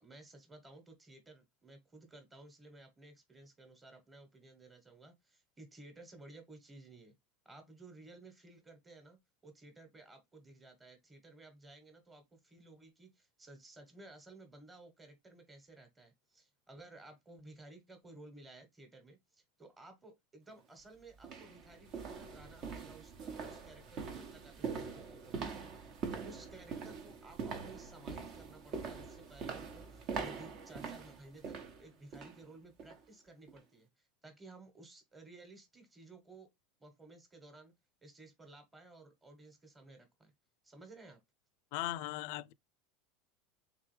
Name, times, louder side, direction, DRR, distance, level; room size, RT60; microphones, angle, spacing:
voice 1, 0.0-7.1 7.4-25.7 26.1-36.5 36.8-37.7 38.0-40.3 40.6-41.2, right 2 dB, 15° right, 1.3 m, -56 dB
sound 1, 20.5-20.6 21.2-32.4 32.8-33.0 33.5-33.6, right 5 dB, 50° right, 1.0 m, -43 dB
voice 2, 41.7-42.5, left 16 dB, 65° left, 0.3 m, -38 dB
3.4 x 3.3 x 3.2 m
supercardioid pair, 125°, 0 cm